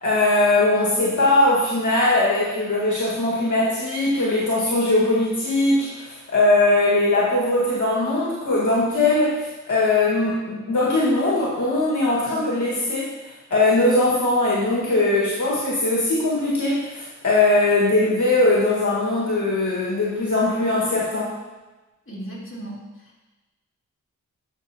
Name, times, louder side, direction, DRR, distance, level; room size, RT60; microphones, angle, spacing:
voice 1, 0.0-13.1 13.5-21.3, left 2 dB, 70° left, -6 dB, 1.7 m, -20 dB
voice 2, 22.1-23.2, right 1 dB, 40° left, -6 dB, 2.7 m, -37 dB
11.5 x 5.9 x 2.9 m, 1.2 s
cardioid pair, 50°, 32 cm